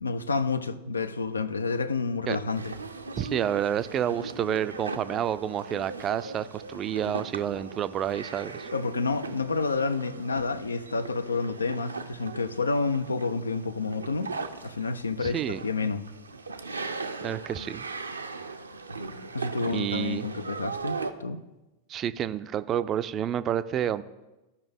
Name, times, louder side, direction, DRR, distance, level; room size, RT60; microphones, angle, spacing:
voice 1, 0.0-2.7 8.7-14.3 14.6-16.0 19.3-21.4, left 4 dB, 75° left, 0.4 m, -29 dB
sound 1, 2.5-21.1, right 4 dB, 80° right, 0.5 m, -39 dB
voice 2, 3.2-8.7 15.2-15.9 17.2-17.9 19.6-20.3 21.9-24.0, right 10 dB, 30° right, 0.4 m, -29 dB
14.0 x 5.4 x 3.5 m
figure-of-eight pair, 90°, 0 cm